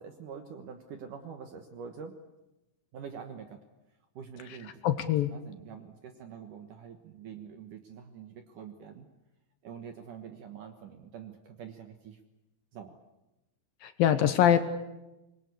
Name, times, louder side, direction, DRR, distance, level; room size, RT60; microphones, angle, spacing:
voice 1, 0.0-2.2 2.9-3.6 4.2-4.8 5.3-9.1 9.6-12.2 12.7-13.0, right 7 dB, 65° right, 6 dB, 2.3 m, -45 dB
voice 2, 4.8-5.3 13.8-14.6, left 10 dB, 70° left, 10 dB, 2.4 m, -24 dB
25.0 x 23.0 x 8.4 m, 0.96 s
omnidirectional pair, 5.2 m